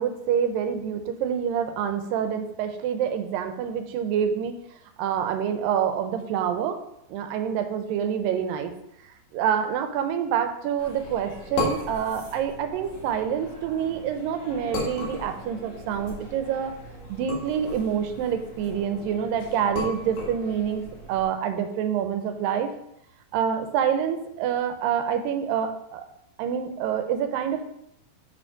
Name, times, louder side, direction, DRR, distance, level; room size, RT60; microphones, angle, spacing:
voice 1, 0.0-4.6 5.0-6.8 7.1-8.7 9.3-16.7 17.1-22.7 23.3-26.0 26.4-27.6, right 8 dB, 85° right, 7 dB, 2.4 m, -27 dB
sound 1, 10.8-21.2, left 1 dB, 75° left, 3.3 m, -36 dB
6.5 x 5.1 x 4.9 m, 0.76 s
omnidirectional pair, 4.0 m